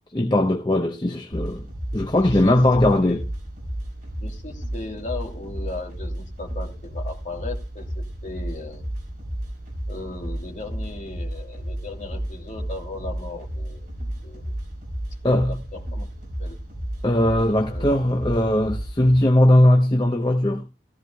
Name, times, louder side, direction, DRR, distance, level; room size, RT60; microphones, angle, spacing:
voice 1, 0.1-1.6 1.9-3.2 15.2-15.5 17.0-20.6, left 1 dB, 25° left, 0.8 m, -19 dB
sound 1, 1.3-19.2, right 1 dB, 45° right, 5.6 m, -33 dB
voice 2, 2.2-2.6 3.0-3.2 4.2-8.8 9.9-13.9 14.2-14.5 15.4-16.1 16.4-16.6 17.7-17.8, left 2 dB, 45° left, 2.6 m, -37 dB
15.0 x 15.0 x 2.2 m
head